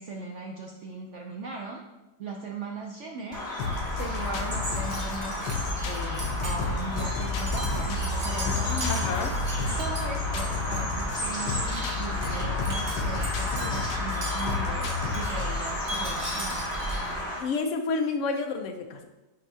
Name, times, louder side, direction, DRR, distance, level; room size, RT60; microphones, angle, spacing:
voice 1, 0.0-1.8 2.2-3.4 3.9-5.4 5.8-16.6, right 3 dB, 75° right, 1 dB, 0.6 m, -38 dB
Bird vocalization bird call bird song, 3.3-17.4, left 1 dB, ahead, 1.8 m, -33 dB
sound 1, 3.6-15.6, left 6 dB, 85° left, 1.3 m, -32 dB
Wind chime, 3.6-17.3, right 1 dB, 35° right, 1.3 m, -35 dB
voice 2, 8.9-9.3 17.4-19.0, left 4 dB, 60° left, 4 dB, 0.8 m, -29 dB
8.1 x 4.3 x 2.7 m, 1.0 s
omnidirectional pair, 1.8 m